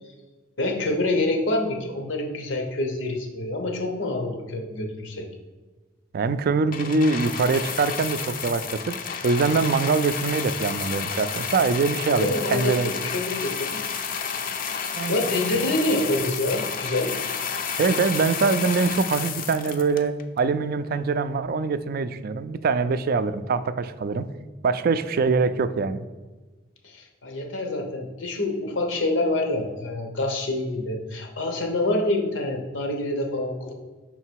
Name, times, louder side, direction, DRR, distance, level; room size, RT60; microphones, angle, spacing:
voice 1, 0.6-5.2 12.2-14.0 15.1-17.1 26.8-33.7, left 2 dB, 90° left, 3 dB, 1.0 m, -26 dB
voice 2, 6.1-9.0 9.2-12.9 15.0-15.2 17.8-24.3 24.6-26.1, right 4 dB, 50° right, 12 dB, 0.3 m, -23 dB
sound 1, 6.7-20.4 21.2-21.3, left 6 dB, 50° left, 0.5 m, -31 dB
5.7 x 3.8 x 4.5 m, 1.3 s
head